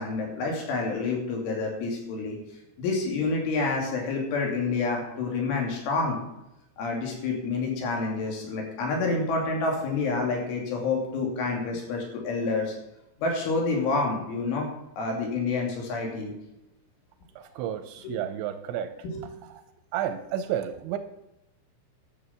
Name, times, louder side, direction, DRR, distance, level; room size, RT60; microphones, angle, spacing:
voice 1, 0.0-2.4 2.8-6.2 6.8-12.7 13.2-14.7 15.0-16.3 18.0-18.2 19.0-19.2, left 3 dB, 80° left, 0 dB, 5.1 m, -28 dB
voice 2, 17.4-18.9 19.9-21.0, right 10 dB, 80° right, 9 dB, 2.8 m, -31 dB
12.5 x 6.6 x 7.2 m, 0.87 s
omnidirectional pair, 5.5 m